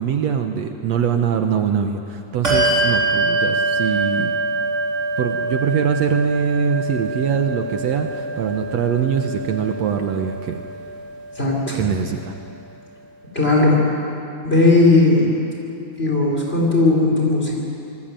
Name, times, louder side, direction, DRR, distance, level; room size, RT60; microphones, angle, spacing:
voice 1, 0.0-4.4 5.2-10.6 11.8-12.3, right 7 dB, 70° right, 5 dB, 2.1 m, -22 dB
Bell, 2.4-12.4, right 2 dB, 25° right, 4.8 m, -25 dB
voice 2, 11.3-11.9 13.3-13.8 14.4-15.3 16.0-17.6, left 2 dB, 20° left, -2 dB, 5.1 m, -16 dB
27.0 x 20.0 x 9.0 m, 2.8 s
omnidirectional pair, 3.3 m